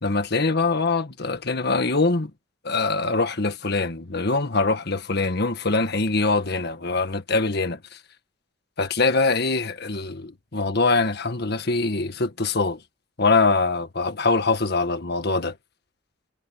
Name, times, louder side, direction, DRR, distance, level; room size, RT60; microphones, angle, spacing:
voice 1, 0.0-2.3 2.6-8.0 8.8-12.8 13.2-15.5, left 3 dB, 60° left, 1.7 m, -23 dB
head